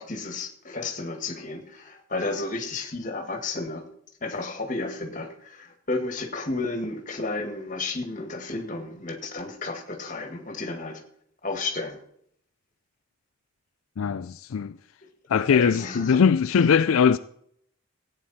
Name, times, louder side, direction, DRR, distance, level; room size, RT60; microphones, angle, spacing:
voice 1, 0.0-3.9 4.2-11.0 11.4-12.0 15.3-16.2, left 3 dB, 35° left, 1.9 m, -32 dB
voice 2, 14.0-14.8 15.3-17.2, left 6 dB, 80° left, 0.4 m, -21 dB
16.5 x 9.2 x 4.3 m
head